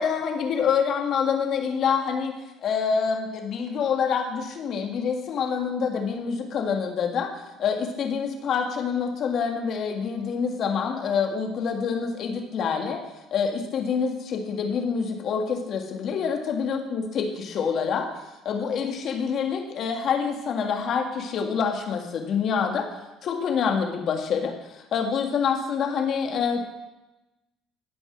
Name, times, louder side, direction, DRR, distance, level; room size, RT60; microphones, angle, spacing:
voice 1, 0.0-2.4 2.6-7.3 7.6-13.0 13.3-18.1 18.5-22.9 23.2-26.6, left 6 dB, 55° left, 3 dB, 1.9 m, -26 dB
16.0 x 5.4 x 6.1 m, 1.0 s
supercardioid pair, 75°, 0 cm